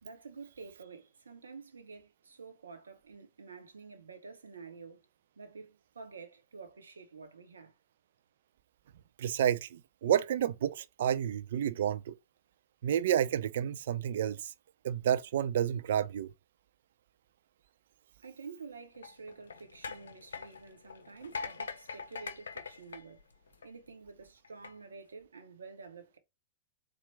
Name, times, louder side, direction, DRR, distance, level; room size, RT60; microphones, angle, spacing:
voice 1, 0.0-5.0 5.4-7.7 18.2-23.2 23.6-26.2, right 4 dB, 85° right, 0.9 m, -49 dB
voice 2, 9.2-12.1 12.8-14.5 14.8-16.3, right 10 dB, 65° right, 0.4 m, -30 dB
sound 1, 18.9-23.9 24.4-24.7, left 5 dB, 80° left, 0.5 m, -43 dB
4.4 x 2.4 x 3.3 m
hypercardioid pair, 105°, 0 cm